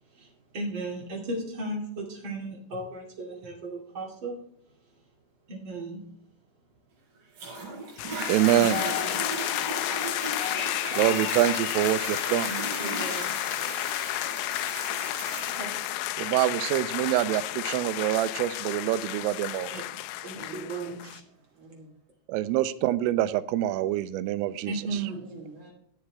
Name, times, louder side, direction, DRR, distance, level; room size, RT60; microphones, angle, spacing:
voice 1, 0.1-4.4 5.5-6.0 8.5-9.3 12.5-13.4 14.4-14.6 15.5-15.8 19.7-21.2 24.7-25.4, right 2 dB, 35° right, 2.2 m, -36 dB
Toilet flush, 7.4-20.4 21.0-21.1, right 3 dB, 55° right, 5.8 m, -38 dB
sound 1, 8.0-21.2, left 17 dB, 85° left, 3.1 m, -31 dB
voice 2, 8.3-8.8 10.9-12.5 16.2-19.7 22.3-24.7, right 13 dB, 85° right, 3.2 m, -25 dB
voice 3, 9.5-9.9 20.4-20.9 21.6-21.9 25.2-25.7, right 3 dB, 70° right, 1.5 m, -46 dB
12.5 x 8.1 x 3.4 m
omnidirectional pair, 5.8 m